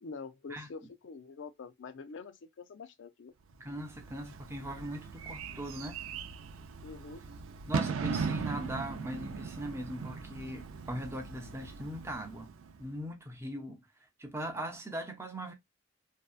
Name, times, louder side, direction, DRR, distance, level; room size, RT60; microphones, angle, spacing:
voice 1, 0.0-3.3 6.8-7.2, left 4 dB, 65° left, 0.4 m, -46 dB
voice 2, 3.6-6.0 7.7-12.5 12.8-13.8 14.2-15.5, right 1 dB, 15° right, 0.5 m, -40 dB
Bird / Fireworks, 3.7-12.9, right 5 dB, 85° right, 0.4 m, -39 dB
2.6 x 2.2 x 2.3 m
head